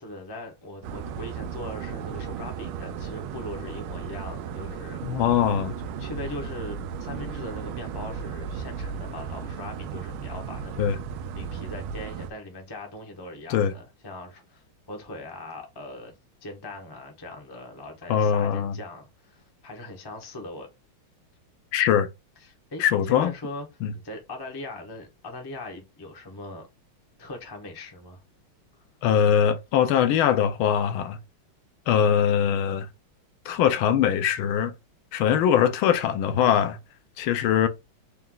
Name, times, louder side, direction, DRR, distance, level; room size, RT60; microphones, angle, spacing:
voice 1, 0.0-5.0 6.0-10.8 11.3-16.1 16.4-20.7 22.4-23.7 23.9-26.7 27.2-28.2 28.7-28.8, left 2 dB, 30° left, 0.4 m, -40 dB
sound 1, 0.8-12.3, right 7 dB, 90° right, 1.4 m, -35 dB
voice 2, 5.0-5.8 10.8-11.0 13.5-13.7 18.1-18.8 21.7-22.1 22.8-23.3 23.8-23.9 29.0-31.2 31.9-32.9 33.5-34.7 35.1-36.8 37.2-37.7, left 9 dB, 80° left, 1.4 m, -22 dB
4.3 x 2.4 x 3.7 m
omnidirectional pair, 2.3 m